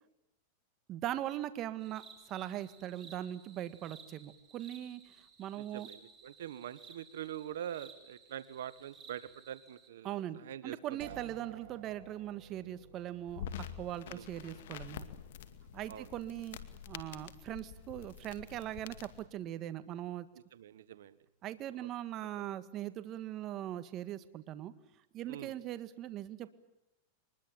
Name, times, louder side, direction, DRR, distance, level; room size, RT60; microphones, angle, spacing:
voice 1, 0.9-5.9 10.0-15.0 15.7-16.6 16.9-20.3 21.4-24.7 25.1-26.5, right 12 dB, 35° right, 12 dB, 1.8 m, -40 dB
sound 1, 1.8-9.9, right 5 dB, 20° right, 5.2 m, -57 dB
voice 2, 5.6-11.1 14.0-14.2 15.9-16.1 20.5-21.2 21.8-21.9 25.3-25.5, right 10 dB, 80° right, 15 dB, 1.3 m, -44 dB
sound 2, 11.0-20.8, right 10 dB, 65° right, 2.6 m, -57 dB
sound 3, 13.3-19.3, left 9 dB, 75° left, 2.3 m, -47 dB
24.0 x 21.0 x 9.0 m, 0.90 s
supercardioid pair, 130°, 0 cm